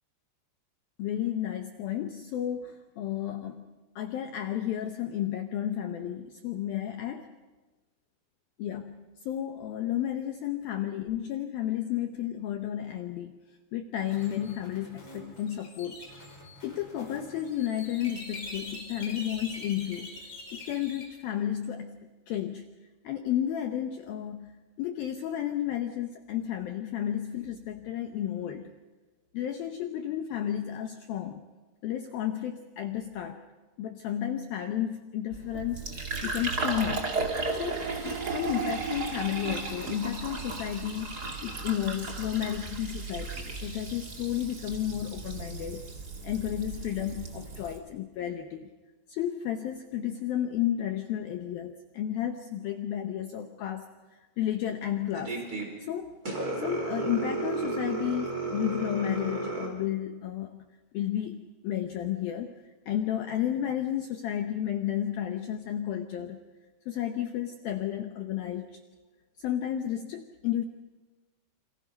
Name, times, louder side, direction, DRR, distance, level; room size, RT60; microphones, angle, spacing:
voice 1, 1.0-3.6 4.0-7.3 8.6-13.3 13.7-16.0 16.6-20.1 20.5-22.0 22.3-22.7 23.0-28.7 29.3-31.5 31.8-33.4 33.8-35.8 36.2-37.1 37.5-37.8 38.0-41.1 41.4-45.8 46.2-48.7 49.1-53.8 54.1-55.4 55.8-56.1 56.5-60.6 60.9-62.5 62.9-66.4 66.9-68.8 69.4-70.6, left 11 dB, 90° left, 6 dB, 2.0 m, -32 dB
sound 1, 14.1-21.0, left 2 dB, 30° left, 5.3 m, -44 dB
Fill (with liquid), 35.3-47.8, right 4 dB, 35° right, 1.5 m, -35 dB
sound 2, 55.1-55.7 56.2-59.7, right 3 dB, 20° right, 4.6 m, -32 dB
29.0 x 26.5 x 5.3 m, 1.2 s
omnidirectional pair, 5.8 m